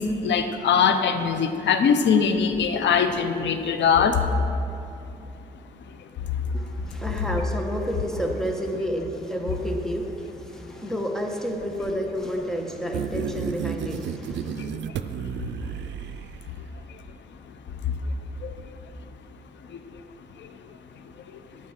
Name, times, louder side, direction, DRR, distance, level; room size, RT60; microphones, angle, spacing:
voice 1, 0.0-4.2 14.6-14.7 17.9-18.0 18.4-18.5 19.7-19.8 20.4-20.5, left 6 dB, 85° left, 8 dB, 0.7 m, -22 dB
voice 2, 6.5-14.6, equal, 5° left, 2 dB, 1.3 m, -30 dB
sound 1, 12.9-16.6, right 8 dB, 85° right, 0.5 m, -32 dB
13.0 x 8.7 x 5.9 m, 2.7 s
cardioid pair, 105°, 18 cm